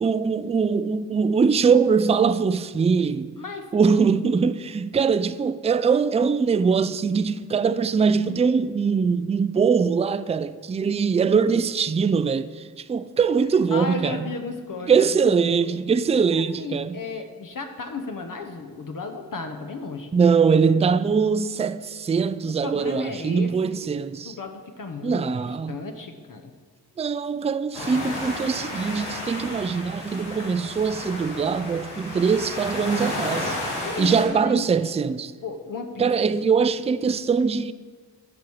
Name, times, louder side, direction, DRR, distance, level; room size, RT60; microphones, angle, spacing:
voice 1, 0.0-3.3 3.7-14.3 14.9-17.0 20.1-24.3 25.0-25.8 27.0-33.6 34.0-35.3 36.0-37.7, right 5 dB, 15° right, 0.3 m, -22 dB
voice 2, 3.4-3.7 13.7-15.8 16.4-20.1 22.6-26.5 33.8-34.6 35.4-36.2, left 4 dB, 55° left, 0.9 m, -35 dB
sound 1, 27.7-34.3, left 1 dB, 90° left, 1.6 m, -32 dB
7.5 x 4.6 x 7.1 m
cardioid pair, 40°, 39 cm